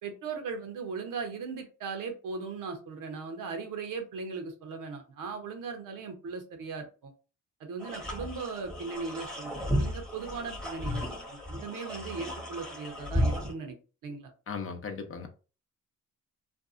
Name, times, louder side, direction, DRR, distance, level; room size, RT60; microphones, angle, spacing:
voice 1, 0.0-7.1 7.6-13.8 14.0-14.3, right 4 dB, 75° right, 0.8 m, -38 dB
sound 1, 7.8-13.5, equal, 5° left, 0.8 m, -33 dB
voice 2, 14.5-15.3, left 5 dB, 40° left, 0.6 m, -37 dB
2.6 x 2.3 x 2.4 m
cardioid pair, 65°, 33 cm